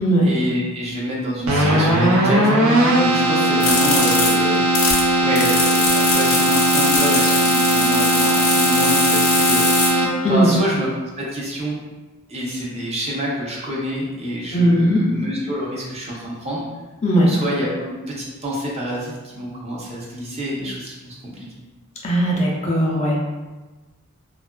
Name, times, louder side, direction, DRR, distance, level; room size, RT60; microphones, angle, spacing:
voice 1, 0.2-2.5 3.0-4.6 5.2-9.6 10.3-10.9 11.2-11.8 12.3-16.6 17.2-21.5, equal, 30° right, -5 dB, 0.6 m, -27 dB
Keyboard (musical), 1.4-10.4, right 1 dB, 80° right, 0.5 m, -18 dB
sound 1, 3.6-5.0 5.4-9.9, left 3 dB, 85° left, 0.6 m, -22 dB
voice 2, 14.5-15.1 17.0-17.3 22.0-23.2, equal, 30° left, -3 dB, 0.4 m, -17 dB
2.7 x 2.4 x 2.2 m, 1.2 s
head